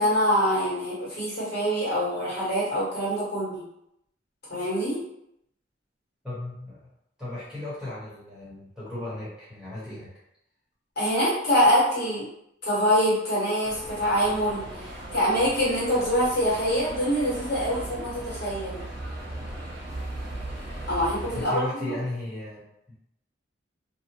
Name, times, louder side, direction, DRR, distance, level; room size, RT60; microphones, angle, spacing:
voice 1, 0.0-3.6 4.5-5.0 10.9-12.3 12.6-18.9 20.9-21.9, equal, 60° left, -8 dB, 1.5 m, -25 dB
voice 2, 6.2-6.9 7.2-10.1 21.3-22.6 22.9-23.0, left 1 dB, 5° right, -10 dB, 1.0 m, -35 dB
sound 1, 13.6-21.4, right 1 dB, 60° right, 0.9 m, -37 dB
2.7 x 2.1 x 2.9 m, 0.78 s
head